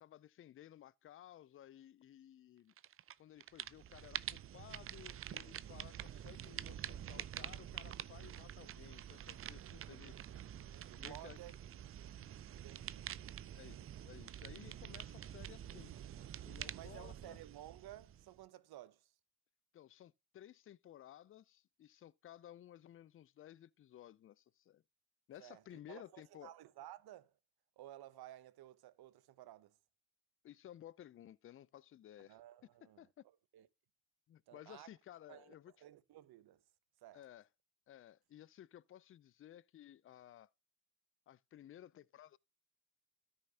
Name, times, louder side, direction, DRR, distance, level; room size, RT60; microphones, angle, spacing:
voice 1, 0.0-2.7 3.2-10.2 10.9-11.4 13.5-13.8 14.0-15.9 16.5-17.4 19.7-24.8 25.3-26.5 30.4-32.4 33.0-33.1 34.3-35.7 37.1-37.5 37.9-40.5 41.3-42.4, left 12 dB, 30° left, 0.4 m, -56 dB
sound 1, 2.8-3.1 3.4-18.4, right 10 dB, 35° right, 0.4 m, -47 dB
voice 2, 9.9-10.4 10.7-11.5 12.5-13.6 16.7-19.1 25.4-27.3 27.8-29.8 32.2-33.1 33.5-33.7 34.5-34.9 35.3-35.6 35.8-36.6 37.0-37.2, right 13 dB, 60° right, 0.8 m, -55 dB
13.0 x 5.6 x 2.8 m
hypercardioid pair, 55°, 43 cm